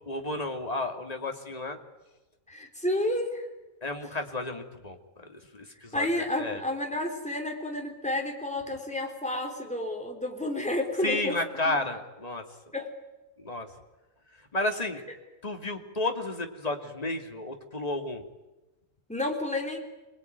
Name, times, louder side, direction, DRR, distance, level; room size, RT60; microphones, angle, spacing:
voice 1, 0.1-1.8 3.8-6.6 11.0-12.5 13.4-13.7 14.3-15.0 15.4-18.2, left 2 dB, 25° left, 4 dB, 2.6 m, -32 dB
voice 2, 2.5-3.4 5.9-11.4 11.7-11.8 12.7-12.9 19.1-19.8, left 1 dB, 5° left, 2 dB, 3.8 m, -30 dB
26.5 x 21.5 x 9.4 m, 1.1 s
omnidirectional pair, 1.5 m